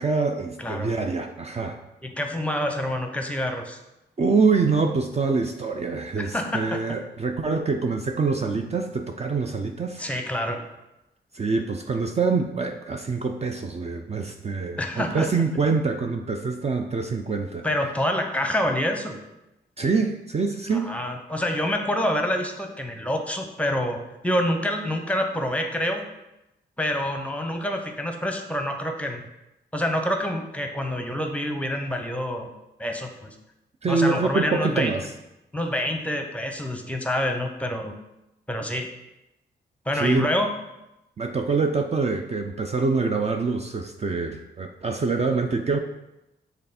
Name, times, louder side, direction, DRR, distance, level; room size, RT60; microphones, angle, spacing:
voice 1, 0.0-1.8 4.2-10.0 11.3-17.6 19.8-20.9 33.8-35.1 39.9-40.3 41.2-45.8, right 4 dB, 35° right, 4 dB, 0.5 m, -25 dB
voice 2, 0.6-0.9 2.0-3.8 6.2-6.8 10.0-10.7 14.8-15.3 17.6-19.2 20.7-26.0 26.8-29.2 29.7-32.5 32.8-33.4 33.9-34.9 35.5-37.9 38.5-38.9 39.9-40.5, left 1 dB, 5° left, 4 dB, 0.8 m, -27 dB
6.5 x 3.5 x 4.1 m, 0.92 s
cardioid pair, 75°, 19 cm